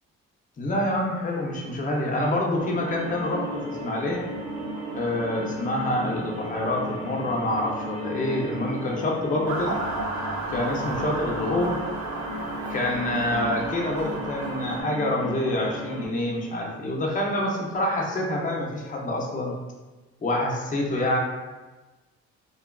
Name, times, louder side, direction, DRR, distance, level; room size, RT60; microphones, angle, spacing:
voice 1, 0.6-4.3 4.9-9.8 10.5-11.8 12.7-19.5 20.2-21.2, left 1 dB, 25° left, -2 dB, 0.6 m, -27 dB
sound 1, 2.6-16.1, equal, 5° right, 0.9 m, -35 dB
Motor vehicle (road) / Siren, 9.5-14.8, right 2 dB, 70° right, 0.6 m, -33 dB
2.7 x 2.4 x 2.2 m, 1.2 s
cardioid pair, 90°, 30 cm